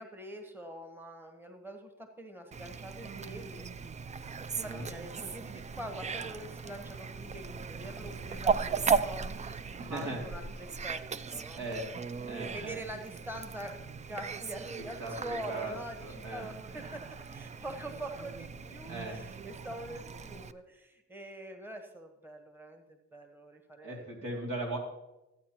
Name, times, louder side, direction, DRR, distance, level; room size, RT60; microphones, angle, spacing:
voice 1, 0.0-3.7 4.6-11.0 11.3-11.6 12.4-24.1, right 1 dB, 5° right, 5 dB, 1.1 m, -44 dB
Fowl, 2.5-20.5, right 5 dB, 25° right, 0.3 m, -37 dB
voice 2, 4.5-4.8 9.8-10.2 11.5-11.8 12.2-12.8 15.0-15.7 16.0-16.9 18.6-19.2 23.8-24.8, right 2 dB, 80° right, -1 dB, 2.7 m, -39 dB
13.5 x 8.6 x 2.9 m, 0.96 s
cardioid pair, 80°, 30 cm